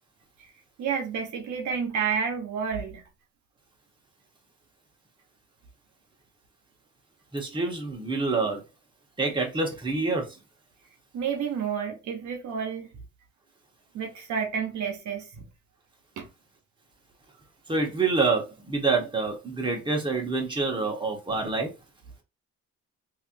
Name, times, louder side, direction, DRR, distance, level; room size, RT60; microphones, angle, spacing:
voice 1, 0.8-3.0 11.1-12.9 13.9-15.5 16.2-16.3, right 6 dB, 70° right, 0.9 m, -30 dB
voice 2, 7.3-8.6 9.2-10.2 17.7-21.7, right 3 dB, 15° right, 1.2 m, -27 dB
3.3 x 2.9 x 2.6 m
cardioid pair, 90°, 30 cm